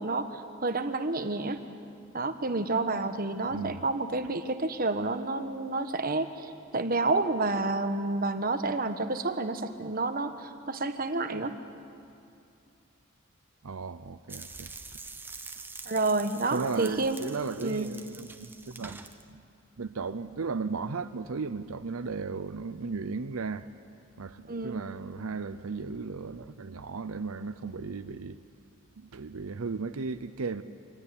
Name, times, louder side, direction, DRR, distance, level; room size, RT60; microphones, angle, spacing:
voice 1, 0.0-1.6 2.1-11.6 15.8-17.2 17.6-17.9 24.5-24.8, right 3 dB, 45° right, 1.2 m, -29 dB
voice 2, 3.5-3.8 13.6-14.7 16.5-19.0 19.3-19.4 19.8-23.7 24.2-28.4 29.0-30.6, right 4 dB, 85° right, 0.7 m, -35 dB
sound 1, 14.3-19.2, right 3 dB, 10° right, 0.8 m, -45 dB
25.0 x 17.0 x 9.9 m
head